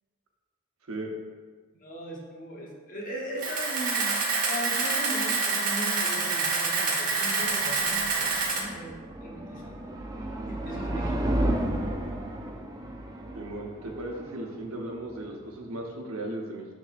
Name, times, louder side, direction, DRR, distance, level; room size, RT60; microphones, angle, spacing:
voice 1, 1.7-4.1 4.5-9.0 9.2-9.8 10.5-11.7, equal, 40° left, -2 dB, 0.9 m, -38 dB
Camera, 3.4-8.6, right 4 dB, 40° right, 0.9 m, -27 dB
sound 1, 6.9-15.8, right 1 dB, 15° right, 0.4 m, -33 dB
voice 2, 13.3-16.7, right 1 dB, 85° right, 1 dB, 0.9 m, -36 dB
10.5 x 3.6 x 2.5 m, 1.5 s
head